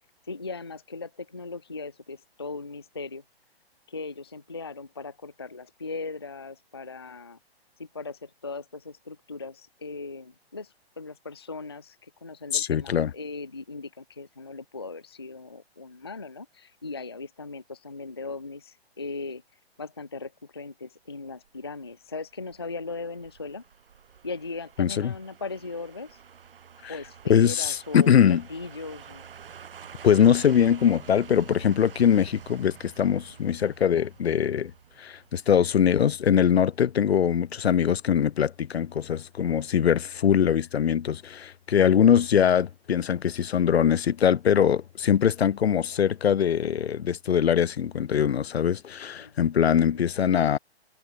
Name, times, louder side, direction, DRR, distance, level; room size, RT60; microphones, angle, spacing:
voice 1, 0.2-3.2 3.9-7.4 7.8-19.4 19.8-23.6 24.2-26.2 26.9-29.3 49.2-50.1, left 3 dB, 25° left, 0.4 m, -38 dB
voice 2, 12.5-13.1 24.8-25.1 26.8-26.9 27.3-28.4 30.0-34.7 35.0-50.6, left 8 dB, 80° left, 1.0 m, -22 dB
sound 1, 21.4-36.4 36.7-36.8, right 7 dB, 60° right, 2.6 m, -48 dB
hypercardioid pair, 175°, 31 cm